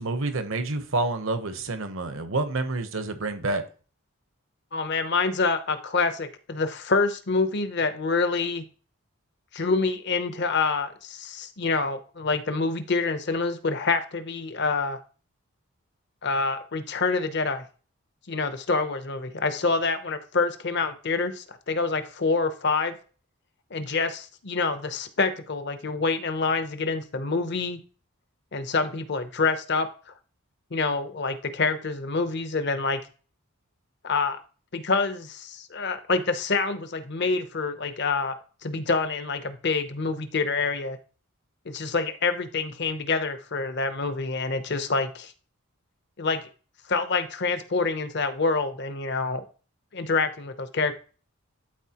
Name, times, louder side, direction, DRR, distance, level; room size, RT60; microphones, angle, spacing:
voice 1, 0.0-3.6, right 2 dB, 65° right, 0.9 m, -28 dB
voice 2, 4.7-8.6 9.5-15.0 16.2-17.7 18.3-23.0 23.7-27.8 28.5-29.9 30.7-33.0 34.0-34.4 34.7-38.3 38.6-41.0 41.7-45.3 46.2-46.5 46.9-49.4 49.9-50.9, left 4 dB, 50° left, 0.7 m, -26 dB
12.0 x 4.2 x 2.9 m
head